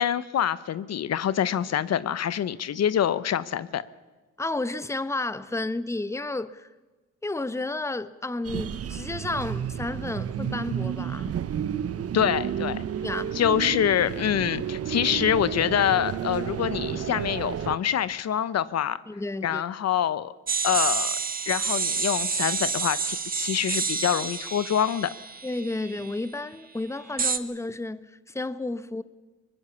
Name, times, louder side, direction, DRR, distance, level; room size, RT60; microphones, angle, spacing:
voice 1, 0.0-3.8 12.1-12.8 13.3-19.0 19.4-20.3 20.6-21.2 21.5-25.1, left 9 dB, 55° left, 1.0 m, -25 dB
voice 2, 4.4-6.7 7.2-11.4 13.0-13.4 19.1-19.6 25.4-29.0, left 2 dB, 10° left, 1.1 m, -32 dB
sound 1, 8.4-17.8, right 8 dB, 50° right, 1.0 m, -31 dB
sound 2, 20.5-26.2 27.2-27.4, right 5 dB, 30° right, 1.7 m, -29 dB
23.5 x 20.5 x 7.0 m
cardioid pair, 90°, 30 cm